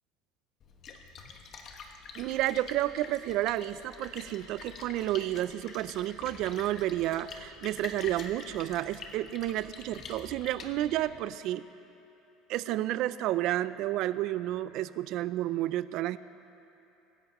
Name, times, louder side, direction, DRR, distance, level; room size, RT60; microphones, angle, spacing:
Splash splatter, 0.6-11.2, left 4 dB, 40° left, 1.1 m, -47 dB
voice 1, 2.2-11.6 12.5-16.2, right 14 dB, 55° right, 15 dB, 0.4 m, -31 dB
24.5 x 11.0 x 3.0 m, 2.9 s
cardioid pair, 150°, 0 cm